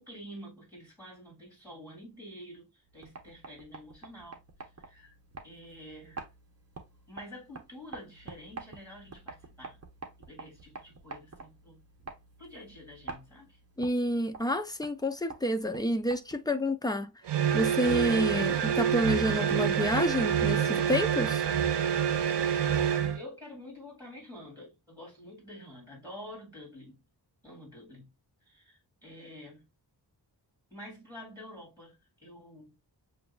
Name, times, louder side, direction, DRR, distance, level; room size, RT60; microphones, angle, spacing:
voice 1, 0.0-4.4 4.8-5.1 5.4-6.3 7.1-9.8 10.2-11.8 12.4-13.6 22.9-27.0 27.4-28.1 28.4-29.7 30.7-32.8, equal, 10° right, 3.0 m, -48 dB
sound 1, 2.9-16.6, right 4 dB, 35° right, 1.2 m, -48 dB
voice 2, 13.8-17.1 17.5-21.4, equal, 10° left, 0.5 m, -29 dB
sound 2, 17.3-23.2, right 8 dB, 80° right, 0.7 m, -27 dB
6.8 x 2.6 x 2.3 m
wide cardioid pair, 95°, 41 cm